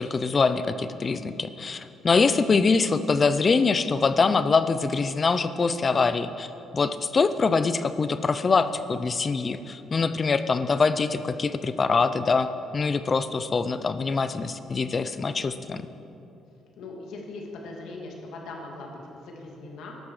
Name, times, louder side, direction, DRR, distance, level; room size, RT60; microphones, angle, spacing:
voice 1, 0.0-12.5 12.7-15.8, left 4 dB, 35° left, 12 dB, 0.5 m, -24 dB
voice 2, 16.8-20.0, left 2 dB, 80° left, 0 dB, 2.5 m, -40 dB
13.5 x 12.0 x 4.9 m, 2.8 s
cardioid pair, 105°, 0 cm